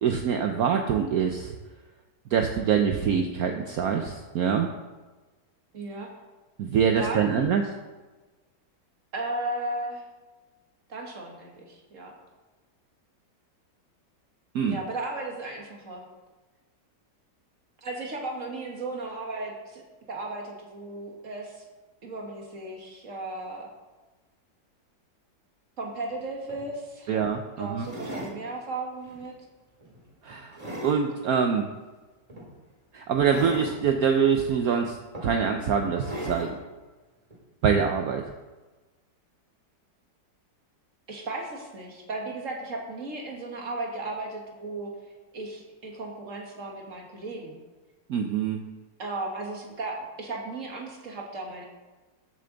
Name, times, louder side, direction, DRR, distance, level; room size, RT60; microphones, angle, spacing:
voice 1, 0.0-1.6 2.3-4.7 6.6-7.6 14.5-14.8 27.1-27.9 30.2-30.6 30.8-31.7 32.9-36.6 37.6-38.2 48.1-48.6, right 7 dB, 65° right, 4 dB, 1.0 m, -25 dB
voice 2, 5.7-6.1 7.0-7.5 9.1-10.0 10.9-12.1 14.7-16.0 17.8-19.8 20.1-21.7 22.0-23.7 25.8-27.1 27.6-29.3 41.1-44.9 45.3-47.6 49.0-51.7, right 2 dB, 45° right, 0 dB, 2.0 m, -35 dB
sound 1, 26.1-26.2 26.5-26.7 27.8-28.4 29.0-29.3 29.8-31.0 32.3-32.5 33.2-33.8 34.6-34.7 35.1-35.6 36.0-36.6 37.3-37.4, equal, 20° right, 2.2 m, -37 dB
13.5 x 6.9 x 3.9 m, 1.2 s
omnidirectional pair, 2.0 m